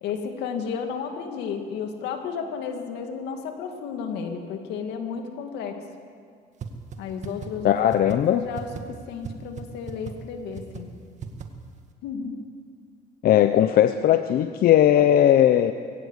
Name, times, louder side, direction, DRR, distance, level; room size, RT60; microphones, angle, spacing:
voice 1, 0.0-5.8 7.0-10.9 12.0-12.4, left 6 dB, 90° left, 5 dB, 2.4 m, -33 dB
sound 1, 6.6-6.7 6.9-7.0 7.2-7.5 7.9-8.2 8.6-8.8 9.2-9.3 9.6-9.7 9.9-10.1 10.6-10.8 11.2-11.4, right 8 dB, 45° right, 2.0 m, -35 dB
voice 2, 7.6-8.4 13.2-15.7, left 11 dB, 60° left, 10 dB, 0.7 m, -18 dB
20.5 x 16.5 x 8.3 m, 2.1 s
cardioid pair, 110°, 17 cm